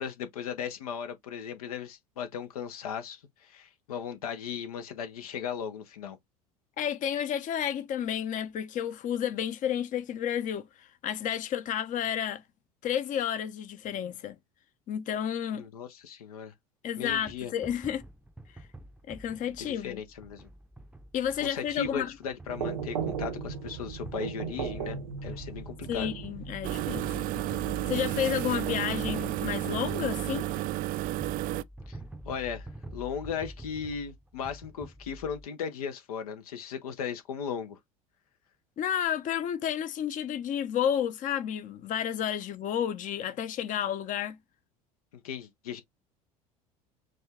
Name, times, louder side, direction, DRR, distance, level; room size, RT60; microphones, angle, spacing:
voice 1, 0.0-6.2 15.5-16.5 17.0-17.5 19.6-20.5 21.4-25.0 25.2-26.1 31.9-32.0 32.2-37.8 45.1-45.8, left 7 dB, 75° left, 0.9 m, -37 dB
voice 2, 6.8-12.4 12.8-14.3 14.9-15.7 16.8-18.0 19.1-20.0 21.1-22.1 25.9-27.1 27.9-30.5 38.8-44.4, left 9 dB, 45° left, 0.8 m, -31 dB
sound 1, 17.1-35.5, right 1 dB, 5° right, 0.7 m, -47 dB
sound 2, 22.5-29.1, right 6 dB, 80° right, 0.9 m, -38 dB
sound 3, 26.6-31.6, right 15 dB, 50° right, 0.4 m, -32 dB
5.1 x 2.4 x 3.5 m
hypercardioid pair, 70°, 19 cm